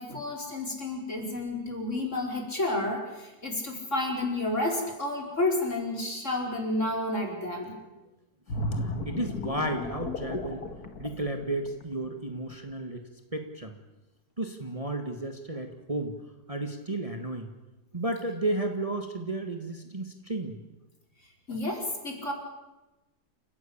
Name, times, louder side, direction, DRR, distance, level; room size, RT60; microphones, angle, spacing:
voice 1, 0.0-7.8 21.5-22.3, left 2 dB, 50° left, 1 dB, 5.2 m, -30 dB
sound 1, 8.5-12.1 12.5-12.7, left 1 dB, 75° left, 2.3 m, -34 dB
voice 2, 8.6-10.6 11.0-13.0 13.3-13.8 14.4-16.2 16.5-17.5 17.9-20.6, right 2 dB, 20° right, 5 dB, 1.9 m, -33 dB
29.0 x 15.5 x 8.7 m, 1.0 s
omnidirectional pair, 1.6 m